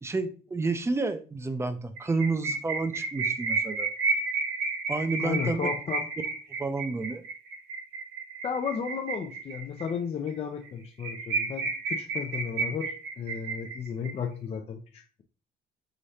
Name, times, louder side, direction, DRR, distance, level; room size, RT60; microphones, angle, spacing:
voice 1, 0.0-3.9 4.9-5.7 6.0-6.1 6.6-7.2, right 3 dB, 15° right, 0.6 m, -30 dB
sound 1, 2.0-9.9 10.3-10.4 10.7-10.8 11.0-14.1, right 4 dB, 85° right, 1.1 m, -31 dB
voice 2, 5.2-6.0 8.4-15.2, left 6 dB, 35° left, 0.5 m, -34 dB
5.0 x 3.1 x 2.7 m
cardioid pair, 110°, 17 cm